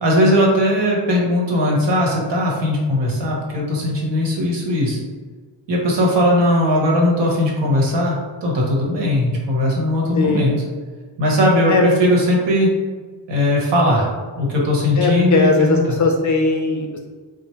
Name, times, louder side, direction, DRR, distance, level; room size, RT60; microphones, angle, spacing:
voice 1, 0.0-5.0 5.7-8.2 8.4-10.5 11.2-12.7 13.3-14.1 14.4-16.0, left 1 dB, 60° right, -2 dB, 1.1 m, -18 dB
voice 2, 10.1-10.6 11.7-11.8 15.0-17.0, left 3 dB, 40° left, 2 dB, 0.4 m, -18 dB
4.4 x 2.0 x 3.1 m, 1.5 s
wide cardioid pair, 130°, 47 cm